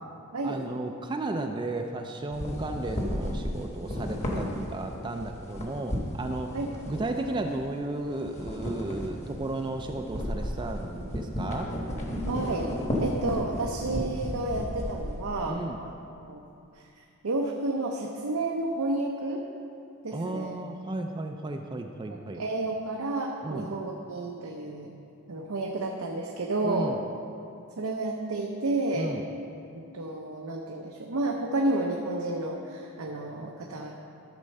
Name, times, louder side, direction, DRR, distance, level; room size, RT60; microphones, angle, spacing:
voice 1, 0.4-6.5 6.9-11.7 15.4-15.8 20.1-22.4 23.4-23.7 26.6-27.0 28.9-29.3, right 2 dB, 20° right, 4 dB, 0.3 m, -34 dB
sound 1, 2.3-7.8 8.1-15.5, equal, 30° left, 1.1 m, -34 dB
voice 2, 12.2-12.7 13.0-15.9 16.3-16.4 17.2-19.4 20.0-20.6 22.1-24.9 25.3-26.9 27.8-29.1 29.7-33.9, right 2 dB, 75° right, 0 dB, 0.7 m, -31 dB
12.0 x 4.3 x 6.5 m, 2.6 s
head